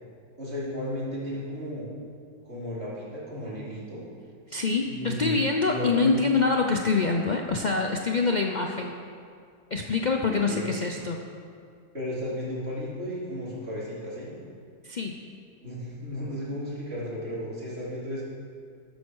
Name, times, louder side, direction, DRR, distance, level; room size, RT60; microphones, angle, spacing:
voice 1, 0.4-1.9 2.4-4.0 4.9-6.2 10.3-10.8 11.9-14.3 15.6-18.2, left 1 dB, 35° right, -8 dB, 4.1 m, -34 dB
voice 2, 4.5-9.0 9.7-11.2 14.8-15.2, left 4 dB, 70° left, 2 dB, 0.4 m, -25 dB
13.0 x 12.0 x 4.8 m, 2.3 s
omnidirectional pair, 1.8 m